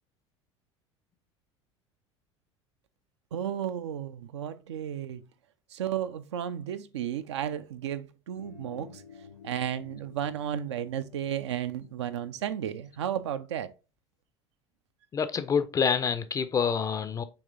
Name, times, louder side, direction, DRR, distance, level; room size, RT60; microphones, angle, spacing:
voice 1, 3.3-5.2 5.7-9.0 9.4-13.7, right 10 dB, 70° right, 0.4 m, -33 dB
sound 1, 8.3-13.4, left 6 dB, 80° left, 2.0 m, -53 dB
voice 2, 15.1-17.2, left 6 dB, 20° left, 0.4 m, -27 dB
6.8 x 2.9 x 2.6 m
figure-of-eight pair, 70°, 15 cm